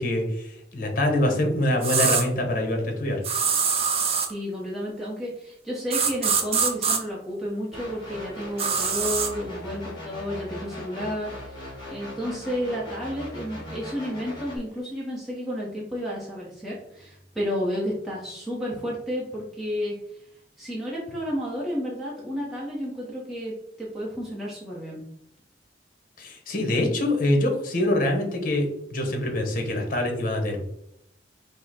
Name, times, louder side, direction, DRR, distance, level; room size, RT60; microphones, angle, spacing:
voice 1, 0.0-3.2 26.2-30.6, left 1 dB, 50° left, 3 dB, 1.0 m, -25 dB
sound 1, 1.8-2.2 3.2-4.3 5.9-7.0 8.6-9.3, right 6 dB, 35° right, 0.5 m, -23 dB
voice 2, 4.3-20.2 20.6-23.5 23.8-25.0, equal, ahead, -7 dB, 0.8 m, -31 dB
sound 2, 7.7-14.6, left 1 dB, 25° left, 1.7 m, -39 dB
5.4 x 2.1 x 4.2 m, 0.77 s
head